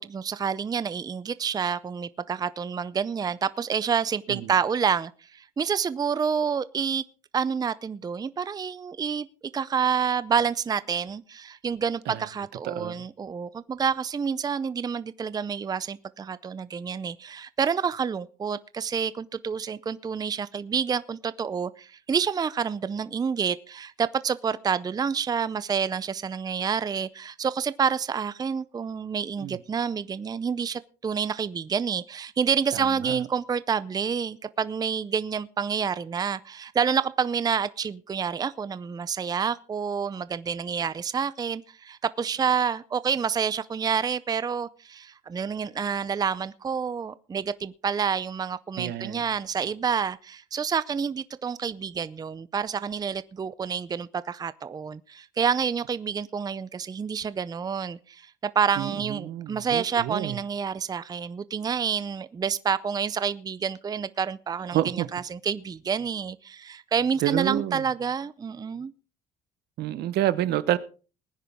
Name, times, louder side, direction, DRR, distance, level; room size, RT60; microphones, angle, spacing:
voice 1, 0.0-7.0 7.3-9.3 9.5-68.9, right 6 dB, 25° right, 0.5 m, -28 dB
voice 2, 12.6-13.0 29.4-29.6 32.7-33.2 48.8-49.3 58.8-60.4 64.7-65.1 67.2-67.8 69.8-70.8, right 13 dB, 75° right, 1.0 m, -29 dB
20.0 x 10.0 x 3.6 m
cardioid pair, 110°, 17 cm